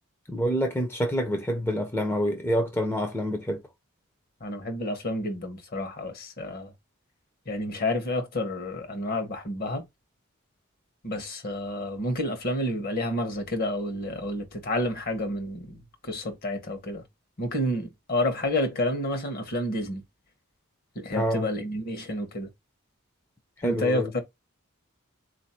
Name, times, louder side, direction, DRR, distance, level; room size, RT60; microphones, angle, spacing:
voice 1, 0.3-3.6 21.1-21.5 23.6-24.1, equal, 10° left, 0.6 m, -27 dB
voice 2, 4.4-6.7 7.5-9.9 11.0-17.0 17.4-20.0 20.9-22.5 23.6-24.2, left 1 dB, 45° left, 1.0 m, -30 dB
4.0 x 2.6 x 4.2 m
head